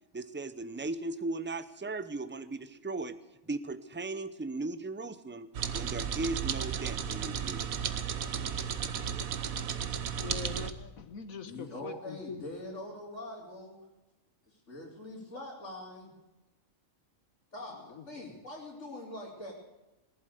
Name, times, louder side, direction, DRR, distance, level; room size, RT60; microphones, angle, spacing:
voice 1, 0.1-3.2 3.5-7.6, right 3 dB, 15° right, 12 dB, 0.5 m, -37 dB
sound 1, 5.5-10.7, right 8 dB, 85° right, 1.4 m, -34 dB
voice 2, 10.2-12.4 17.7-18.2, left 6 dB, 85° left, 9 dB, 1.8 m, -44 dB
voice 3, 11.5-13.7 14.5-16.1 17.5-19.5, left 1 dB, 60° left, -6 dB, 3.7 m, -43 dB
19.5 x 11.5 x 6.6 m, 1.0 s
omnidirectional pair, 1.4 m